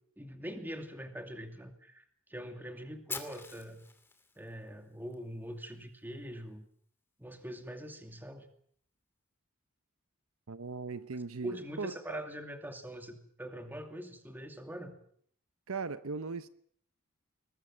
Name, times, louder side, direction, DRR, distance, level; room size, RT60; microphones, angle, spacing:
voice 1, 0.2-2.0 2.3-3.8 4.4-6.7 7.2-8.5 11.4-15.0, equal, 10° right, 2.6 m, -43 dB
Fire, 3.1-5.1, left 4 dB, 10° left, 2.6 m, -44 dB
voice 2, 10.5-12.2 15.7-16.5, right 4 dB, 70° right, 0.9 m, -38 dB
22.0 x 21.0 x 7.4 m
head